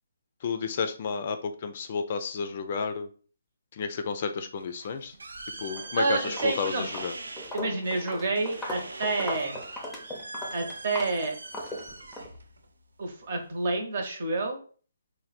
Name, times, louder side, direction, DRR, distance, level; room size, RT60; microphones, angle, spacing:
voice 1, 0.4-3.1 3.7-5.1 5.6-7.1, left 5 dB, 40° left, 8 dB, 0.4 m, -31 dB
sound 1, 4.6-13.7, right 2 dB, 85° right, 0.5 m, -42 dB
Walk footsteps, 5.6-5.9 6.2-12.3, left 1 dB, 5° left, 0.7 m, -38 dB
voice 2, 6.0-6.9 7.5-9.6 10.5-11.3 13.0-14.6, right 3 dB, 50° right, 3 dB, 1.0 m, -29 dB
3.3 x 2.2 x 4.1 m, 0.41 s
hypercardioid pair, 155°, 0 cm